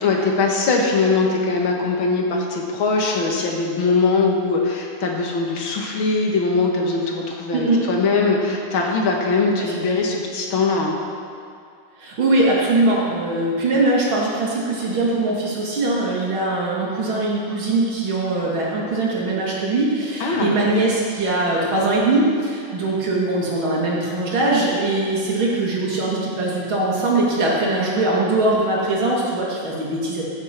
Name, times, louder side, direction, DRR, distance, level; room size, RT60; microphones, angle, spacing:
voice 1, 0.0-11.0 20.2-20.6, left 3 dB, 85° left, 0 dB, 2.2 m, -21 dB
voice 2, 7.5-7.8 9.6-9.7 12.0-30.2, right 2 dB, 80° right, -4 dB, 2.9 m, -21 dB
15.0 x 7.4 x 4.5 m, 2.3 s
omnidirectional pair, 2.2 m